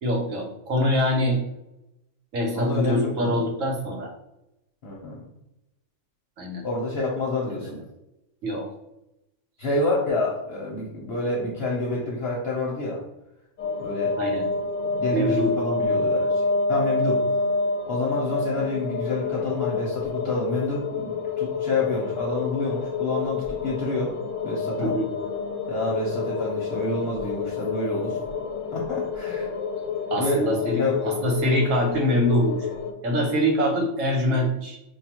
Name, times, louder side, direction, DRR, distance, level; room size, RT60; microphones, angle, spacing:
voice 1, 0.0-1.4 2.3-4.1 6.4-6.6 7.6-7.7 8.4-8.7 14.2-14.5 15.1-15.6 24.8-25.1 30.1-32.7 33.0-34.8, equal, 75° right, 1 dB, 1.3 m, -24 dB
voice 2, 2.5-3.4 4.8-5.2 6.6-7.8 9.6-13.0 13.8-14.2 15.0-17.2 17.9-24.1 24.4-24.9 25.7-28.2 28.7-29.5 30.2-30.4 30.7-31.2, left 2 dB, 55° left, -3 dB, 0.9 m, -28 dB
sound 1, 13.6-32.9, left 4 dB, 85° left, 1.0 m, -28 dB
5.1 x 2.3 x 2.9 m, 0.89 s
omnidirectional pair, 1.3 m